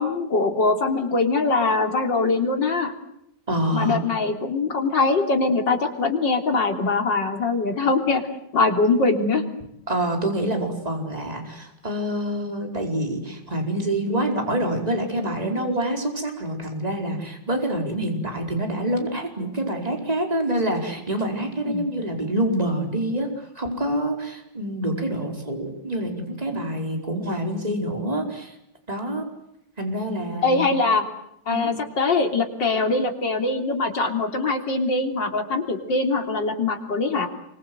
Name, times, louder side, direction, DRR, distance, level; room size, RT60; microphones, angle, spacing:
voice 1, 0.0-2.9 3.7-8.2 8.5-9.4 21.7-21.9 30.4-31.0 31.5-37.3, left 3 dB, 75° left, 5 dB, 4.0 m, -22 dB
voice 2, 3.5-4.0 9.9-28.5 28.9-29.3 29.8-30.7 31.5-31.8, right 1 dB, 20° right, 3 dB, 5.0 m, -26 dB
28.0 x 24.5 x 8.0 m, 0.77 s
omnidirectional pair, 2.0 m